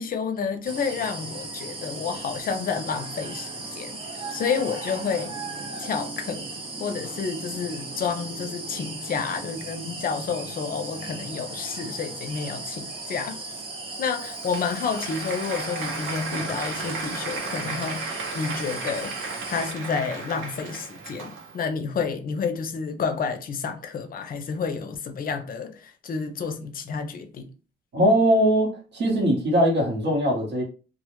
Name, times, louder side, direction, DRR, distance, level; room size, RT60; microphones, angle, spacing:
voice 1, 0.0-4.0 4.3-5.3 5.8-6.5 6.8-13.6 14.0-27.5, left 5 dB, 45° left, 0.5 m, -30 dB
sound 1, 0.6-19.7, right 2 dB, 25° right, 0.6 m, -37 dB
Applause, 14.1-21.7, right 3 dB, 85° right, 0.7 m, -35 dB
voice 2, 27.9-30.6, equal, 60° right, 0.9 m, -21 dB
2.0 x 2.0 x 3.0 m
cardioid pair, 90°, 20 cm